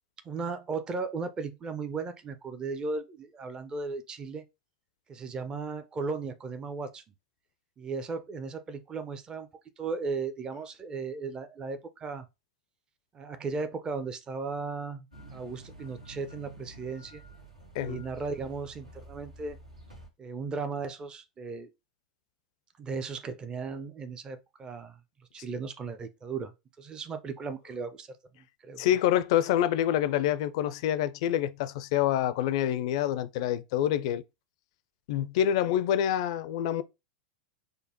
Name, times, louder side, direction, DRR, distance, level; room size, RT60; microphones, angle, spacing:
voice 1, 0.3-4.4 5.1-7.0 7.8-9.5 9.8-12.2 13.1-17.2 17.8-19.6 20.2-21.7 22.8-25.0 25.3-28.1 28.7-28.9, right 4 dB, 20° right, 0.5 m, -36 dB
sound 1, 15.1-20.1, right 1 dB, 90° right, 1.3 m, -49 dB
voice 2, 28.8-34.2 35.1-36.8, left 11 dB, 55° left, 0.4 m, -27 dB
5.0 x 2.1 x 2.8 m
figure-of-eight pair, 95°, 4 cm